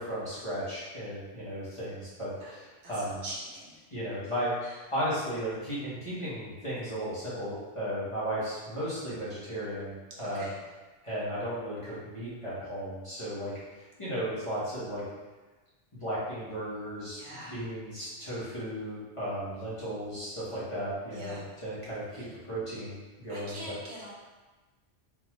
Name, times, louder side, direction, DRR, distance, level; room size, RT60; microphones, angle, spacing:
voice 1, 0.0-3.2 3.9-10.5 11.0-15.0 16.0-23.8, equal, 30° left, -10 dB, 0.9 m, -35 dB
voice 2, 2.8-3.8 4.6-4.7 10.3-10.5 17.2-17.5 21.1-21.4 22.1-22.3 23.3-24.1, right 1 dB, 75° right, -6 dB, 1.1 m, -43 dB
3.5 x 2.2 x 2.9 m, 1.2 s
omnidirectional pair, 1.1 m